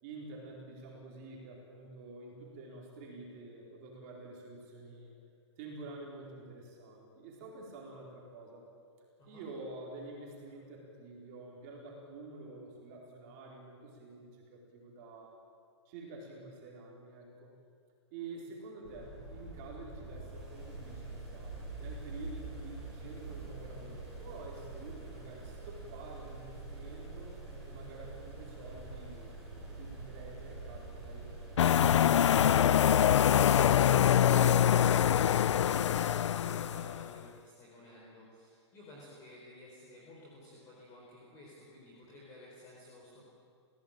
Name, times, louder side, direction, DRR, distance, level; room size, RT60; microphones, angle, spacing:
voice 1, 0.0-5.1 5.6-8.7 9.3-15.4 15.8-17.5 18.1-27.4 27.6-31.3 31.7-34.7, right 3 dB, 30° right, -2 dB, 4.4 m, -48 dB
sound 1, 18.8-32.5, right 2 dB, ahead, 7.3 m, -45 dB
sound 2, 31.6-37.1, left 9 dB, 80° left, 0.6 m, -24 dB
voice 2, 35.2-43.3, left 1 dB, 20° left, -4 dB, 4.3 m, -54 dB
28.5 x 16.5 x 9.0 m, 2.4 s
hypercardioid pair, 175°, 15 cm